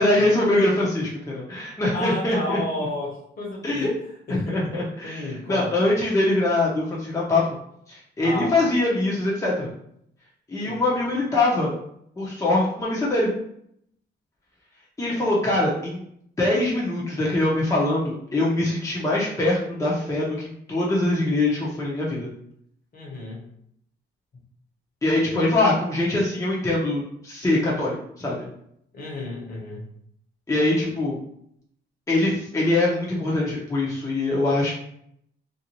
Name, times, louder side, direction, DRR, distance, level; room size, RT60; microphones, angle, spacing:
voice 1, 0.0-2.6 3.6-3.9 4.3-7.4 7.9-9.7 10.5-11.7 12.1-13.3 15.0-16.0 16.4-22.3 25.0-28.5 30.5-31.2 32.1-34.7, left 2 dB, 15° left, -5 dB, 0.7 m, -23 dB
voice 2, 1.9-3.9 4.3-4.7 5.0-5.8 8.2-8.7 10.6-11.1 22.9-23.4 28.9-29.9, left 1 dB, 45° left, -2 dB, 1.1 m, -32 dB
2.6 x 2.3 x 2.9 m, 0.71 s
cardioid pair, 90°, 20 cm